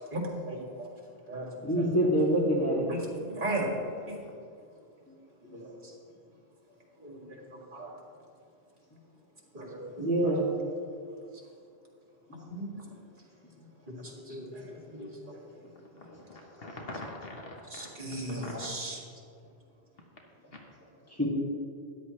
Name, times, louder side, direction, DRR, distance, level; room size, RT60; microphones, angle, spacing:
voice 1, 0.5-0.9 1.3-1.5 1.7-2.2 2.9-3.0 3.2-4.2 5.5-5.7 7.0-7.4 7.7-7.9 9.5-10.3 12.5-12.8 13.9-14.0 14.3-15.4 17.7-19.0, right 1 dB, 50° right, -2 dB, 2.3 m, -37 dB
voice 2, 1.6-2.9 5.1-5.2 5.4-5.5 10.0-10.5 12.3-12.4 21.1-21.3, right 1 dB, 15° left, -5 dB, 2.5 m, -26 dB
voice 3, 16.0-17.9 18.4-18.5, left 2 dB, 65° left, 0 dB, 1.3 m, -43 dB
13.0 x 10.5 x 3.2 m, 2.5 s
omnidirectional pair, 1.1 m